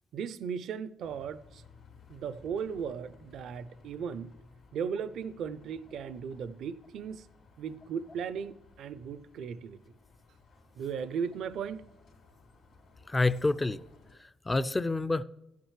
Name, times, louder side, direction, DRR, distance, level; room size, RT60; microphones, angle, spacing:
voice 1, 0.1-1.6 2.1-4.3 4.7-7.2 7.6-9.8 10.8-11.9, right 7 dB, 75° right, 0.5 m, -37 dB
Bus, 1.0-14.2, left 4 dB, 65° left, 2.5 m, -58 dB
voice 2, 13.1-13.8 14.2-15.2, left 2 dB, 20° left, 0.3 m, -28 dB
14.5 x 9.4 x 3.2 m
cardioid pair, 90°, 0 cm